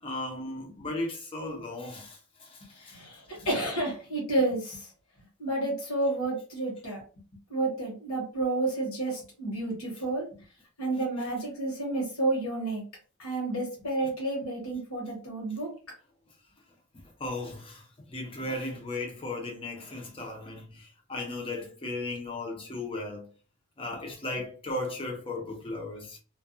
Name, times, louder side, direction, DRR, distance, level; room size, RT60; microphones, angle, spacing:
voice 1, 0.0-3.0 3.3-3.5 17.2-23.3 23.8-26.2, left 2 dB, 25° left, 0.6 m, -36 dB
voice 2, 2.8-4.9 5.4-7.0 7.5-10.3 10.8-12.8 13.2-15.7, right 2 dB, 65° left, 1.1 m, -30 dB
2.4 x 2.2 x 2.5 m
head